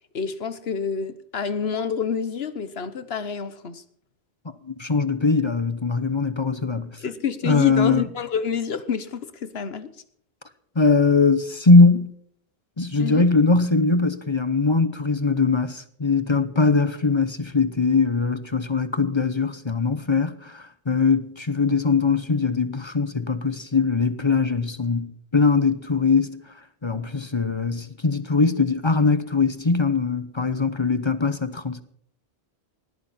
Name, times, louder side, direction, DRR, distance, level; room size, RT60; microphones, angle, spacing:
voice 1, 0.1-3.8 7.0-9.9 13.0-13.3, left 6 dB, 65° left, 1.3 m, -28 dB
voice 2, 4.6-6.9 7.4-8.1 10.8-12.1 12.8-26.4 26.8-31.8, left 4 dB, 30° left, 0.8 m, -21 dB
19.5 x 14.5 x 4.3 m
omnidirectional pair, 1.1 m